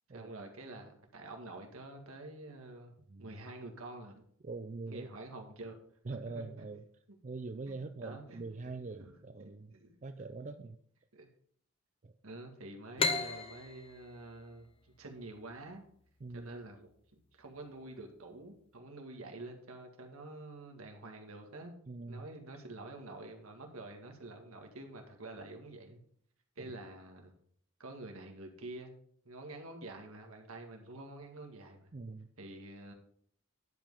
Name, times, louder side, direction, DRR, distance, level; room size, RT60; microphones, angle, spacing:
voice 1, 0.1-2.9 3.2-4.2 4.9-5.7 6.1-6.5 7.7-8.4 9.0-9.1 9.4-9.9 11.1-11.3 12.2-14.7 15.0-15.8 16.3-16.9 17.3-21.7 22.1-26.0 26.5-27.3 27.8-28.9 29.2-31.9 32.4-32.9, right 2 dB, 85° right, 3 dB, 1.8 m, -48 dB
voice 2, 4.4-5.1 6.1-6.8 7.2-9.7 10.0-10.8 12.0-12.1 16.2-16.5 21.9-22.3 31.9-32.3, right 3 dB, 35° right, 8 dB, 0.5 m, -43 dB
sound 1, 13.0-16.4, left 3 dB, 25° left, 0.7 m, -36 dB
10.5 x 5.3 x 5.5 m, 0.63 s
head